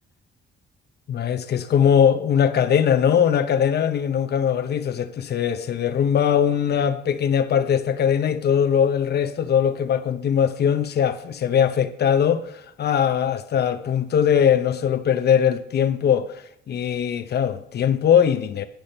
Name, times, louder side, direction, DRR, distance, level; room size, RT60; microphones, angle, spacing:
voice 1, 1.1-18.7, left 8 dB, 55° left, 0.8 m, -21 dB
10.5 x 6.2 x 5.4 m
cardioid pair, 90°, 20 cm